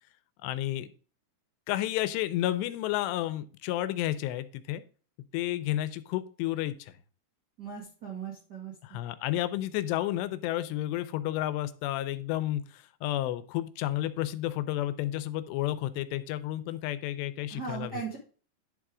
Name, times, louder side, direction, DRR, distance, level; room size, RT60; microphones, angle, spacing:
voice 1, 0.4-0.9 1.7-4.8 5.3-6.9 8.8-18.0, left 14 dB, 85° left, 14 dB, 2.7 m, -31 dB
voice 2, 7.6-8.7 17.5-18.2, right 6 dB, 85° right, -2 dB, 0.9 m, -38 dB
11.0 x 3.7 x 4.8 m, 0.39 s
omnidirectional pair, 4.9 m